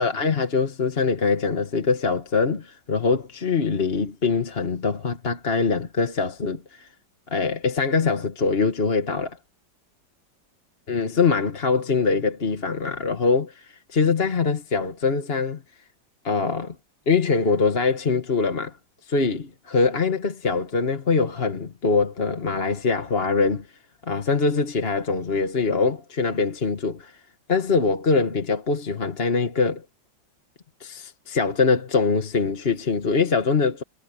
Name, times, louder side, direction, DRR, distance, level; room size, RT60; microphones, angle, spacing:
voice 1, 0.0-6.9 7.3-9.4 10.9-15.6 16.2-16.7 17.1-18.7 19.1-23.7 24.1-27.1 27.5-29.8 30.8-33.8, left 4 dB, 35° left, 1.5 m, -23 dB
omnidirectional pair, 2.1 m